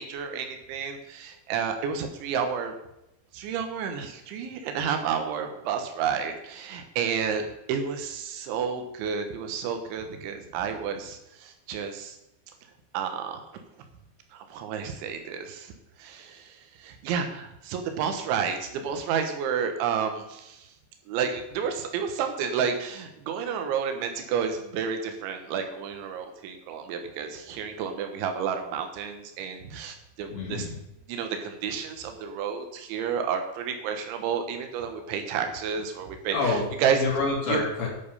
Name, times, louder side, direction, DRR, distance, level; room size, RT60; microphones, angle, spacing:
voice 1, 0.0-2.7 3.3-12.2 12.9-13.4 14.3-15.7 16.0-20.7 21.1-30.7 31.1-37.0 37.5-37.6, right 7 dB, 80° right, 6 dB, 3.6 m, -30 dB
voice 2, 30.3-30.7 36.3-36.6 37.0-37.9, left 3 dB, 70° left, -2 dB, 5.3 m, -27 dB
10.5 x 8.7 x 5.5 m, 0.86 s
omnidirectional pair, 5.4 m